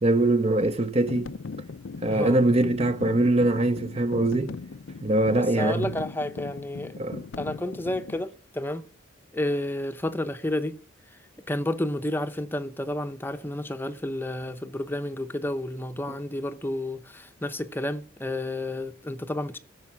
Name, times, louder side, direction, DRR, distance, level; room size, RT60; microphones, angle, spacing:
voice 1, 0.0-1.3 2.0-4.6 5.0-5.9 7.0-7.2, right 2 dB, 30° right, 0.6 m, -23 dB
sound 1, 0.9-8.3, left 4 dB, 65° left, 0.5 m, -39 dB
voice 2, 2.1-2.4 5.3-6.9 7.4-8.9 9.3-10.8 11.5-19.6, left 1 dB, 10° left, 0.7 m, -31 dB
15.0 x 7.0 x 7.1 m
head